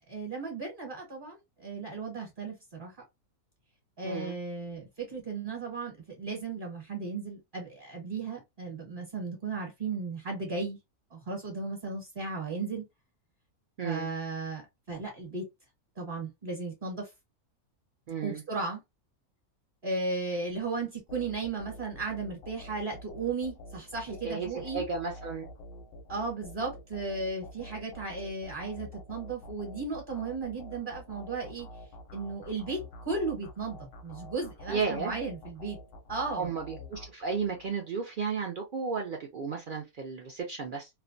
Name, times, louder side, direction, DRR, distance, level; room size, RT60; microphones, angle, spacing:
voice 1, 0.1-2.9 4.0-10.8 11.1-12.8 13.8-15.5 16.0-17.1 18.2-18.8 19.8-24.8 26.1-31.7 32.1-35.8 36.1-36.5, right 3 dB, 40° right, 1.0 m, -35 dB
voice 2, 4.0-4.4 13.8-14.1 18.1-18.4 24.2-25.5 34.7-35.1 36.3-40.9, right 5 dB, 80° right, 0.4 m, -33 dB
sound 1, 21.1-37.7, left 1 dB, 60° left, 0.6 m, -47 dB
2.5 x 2.1 x 2.5 m
omnidirectional pair, 1.5 m